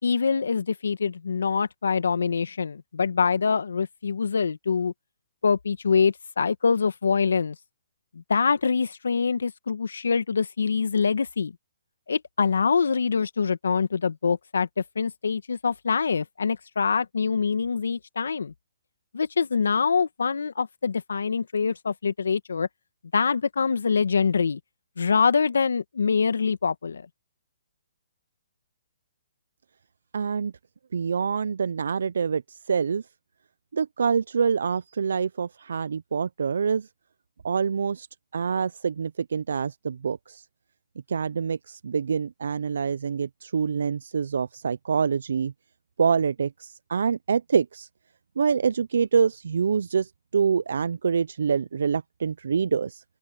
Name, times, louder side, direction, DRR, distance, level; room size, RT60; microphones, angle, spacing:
voice 1, 0.0-4.9 5.4-7.6 8.1-11.5 12.1-18.5 19.1-22.7 23.1-24.6 25.0-27.1, left 5 dB, 75° left, 1.8 m, -24 dB
voice 2, 30.1-30.5 30.9-33.0 33.7-36.9 37.4-38.1 38.3-40.5 41.1-45.5 46.0-47.9 48.4-53.0, right 6 dB, 70° right, 0.6 m, -26 dB
open air
hypercardioid pair, 140°, 0 cm